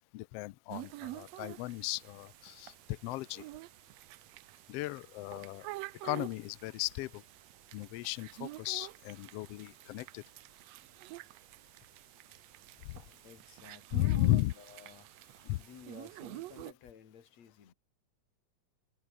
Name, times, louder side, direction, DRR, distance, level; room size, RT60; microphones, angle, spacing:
voice 1, 0.1-3.4 4.7-5.7 6.0-7.2 7.7-10.2 12.8-13.0 13.9-14.5 15.5-15.6, left 18 dB, 80° left, 1.4 m, -35 dB
sound 1, 0.7-16.7, right 17 dB, 75° right, 1.6 m, -48 dB
voice 2, 13.2-15.2 15.6-17.7, left 7 dB, 65° left, 3.5 m, -55 dB
omnidirectional pair, 3.4 m